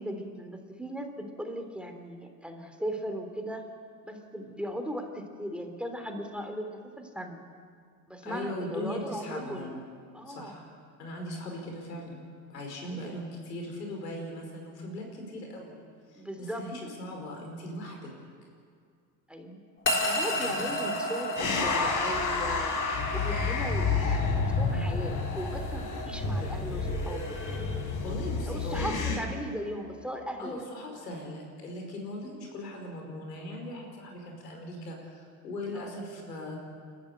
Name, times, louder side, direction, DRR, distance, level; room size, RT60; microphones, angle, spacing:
voice 1, 0.0-3.6 4.0-7.4 8.1-9.8 10.1-10.6 12.8-13.3 16.1-16.7 19.3-19.6 20.0-22.8 23.1-27.3 28.5-30.6 35.7-36.0, equal, ahead, 4 dB, 3.4 m, -38 dB
voice 2, 8.2-9.8 10.3-10.7 11.0-12.2 12.5-15.7 16.1-18.1 20.3-20.6 28.0-29.3 30.4-36.6, left 1 dB, 90° left, 2 dB, 5.2 m, -39 dB
sound 1, 19.9-30.2, left 1 dB, 25° left, 4.1 m, -35 dB
sound 2, 21.4-29.2, left 4 dB, 40° left, 4.4 m, -30 dB
30.0 x 13.5 x 8.1 m, 2.2 s
hypercardioid pair, 75°, 47 cm